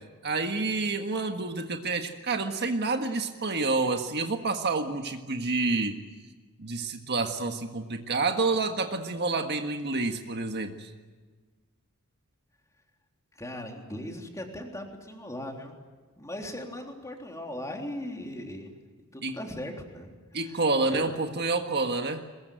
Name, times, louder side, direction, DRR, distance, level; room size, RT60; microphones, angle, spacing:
voice 1, 0.2-6.0 6.6-10.9 19.2-19.4 20.3-22.2, right 3 dB, 50° right, 5 dB, 1.6 m, -28 dB
voice 2, 13.4-15.7 16.2-18.7 19.1-20.6 20.9-21.2, left 1 dB, 15° left, 2 dB, 3.5 m, -39 dB
22.5 x 21.5 x 9.2 m, 1.4 s
head